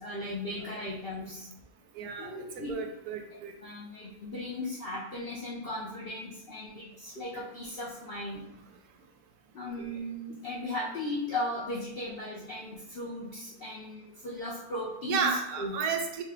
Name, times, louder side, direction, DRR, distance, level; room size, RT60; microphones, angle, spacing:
voice 1, 0.0-1.5 2.2-2.8 3.3-8.5 9.5-15.8, left 1 dB, 45° left, -7 dB, 0.9 m, -37 dB
voice 2, 1.9-3.5 9.8-9.9 15.1-16.2, right 6 dB, 85° right, 4 dB, 1.1 m, -32 dB
5.7 x 2.2 x 3.6 m, 0.85 s
omnidirectional pair, 1.6 m